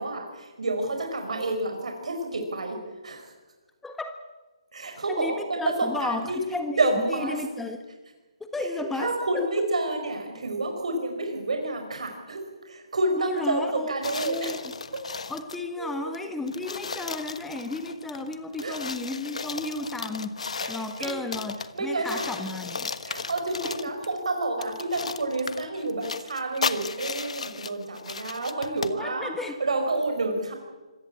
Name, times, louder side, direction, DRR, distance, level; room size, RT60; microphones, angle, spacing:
voice 1, 0.0-2.8 3.0-3.2 4.7-6.4 6.8-7.3 9.0-14.5 15.8-15.9 18.6-18.8 20.8-21.1 21.7-22.3 23.0-29.3 29.6-30.5, right 2 dB, 75° right, 4 dB, 4.9 m, -29 dB
voice 2, 3.8-4.2 5.1-7.8 8.5-9.5 13.2-13.9 14.2-14.6 15.3-20.4 20.7-22.9 23.6-23.9 29.0-29.6, left 2 dB, 5° left, 6 dB, 1.4 m, -33 dB
sound 1, 14.0-15.7 16.1-16.2 16.5-21.8 22.0-24.1 24.6-29.0, left 5 dB, 75° left, 1.4 m, -35 dB
26.0 x 16.5 x 8.6 m, 1.2 s
hypercardioid pair, 155°, 3 cm